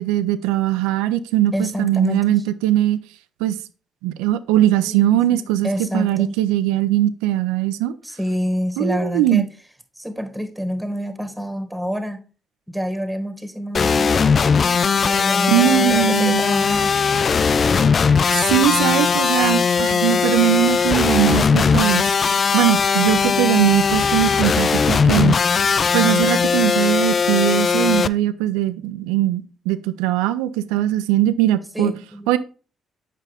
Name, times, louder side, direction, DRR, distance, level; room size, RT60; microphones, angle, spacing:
voice 1, 0.0-3.0 3.4-3.6 4.0-7.9 8.8-9.5 15.5-16.4 18.3-22.1 22.5-25.4 25.9-31.9 32.3-32.4, right 13 dB, 90° right, 13 dB, 0.4 m, -20 dB
voice 2, 1.5-2.4 4.8-6.4 8.0-9.5 10.0-12.2 12.7-16.9 31.7-32.3, equal, 5° right, 7 dB, 1.5 m, -27 dB
sound 1, 13.7-28.1, left 5 dB, 45° left, 0.3 m, -18 dB
7.4 x 5.5 x 3.4 m, 0.35 s
supercardioid pair, 60°, 0 cm